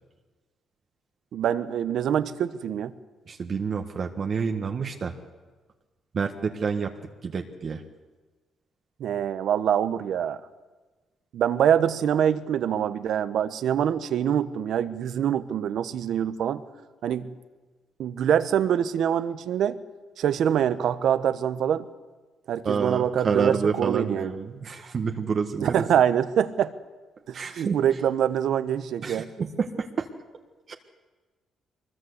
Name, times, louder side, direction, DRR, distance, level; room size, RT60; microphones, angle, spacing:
voice 1, 1.3-2.9 9.0-10.4 11.3-16.6 17.0-17.3 18.0-19.8 20.2-21.9 22.5-24.3 25.6-26.7 27.3-29.3, right 9 dB, 70° right, 12 dB, 1.1 m, -25 dB
voice 2, 3.3-5.1 6.1-6.9 7.2-7.8 22.6-25.8 27.3-27.8 29.0-30.1 30.7-30.8, right 5 dB, 50° right, 3 dB, 1.6 m, -28 dB
23.0 x 21.0 x 8.2 m, 1.3 s
cardioid pair, 90°, 0 cm